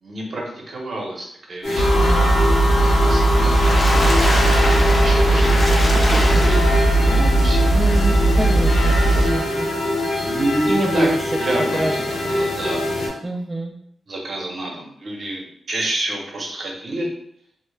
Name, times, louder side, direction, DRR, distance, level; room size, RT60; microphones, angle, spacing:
voice 1, 0.0-2.0 2.8-4.3 5.0-5.6 5.9-7.8 10.2-11.1 11.4-13.2 14.1-17.1, right 1 dB, 55° right, -1 dB, 0.7 m, -29 dB
sound 1, 1.6-13.1, left 1 dB, 85° left, 0.7 m, -24 dB
sound 2, 1.8-9.3, right 1 dB, 60° left, 0.9 m, -17 dB
voice 2, 1.9-2.4 7.7-9.7 10.7-11.2 11.7-11.9 12.2-12.3 13.2-13.7, right 2 dB, 20° right, -1 dB, 0.3 m, -26 dB
Water / Splash splatter, 3.2-7.0 7.6-7.7 8.0-8.1, left 1 dB, 30° left, 0.6 m, -25 dB
2.1 x 2.1 x 3.1 m, 0.68 s
cardioid pair, 80°, 0 cm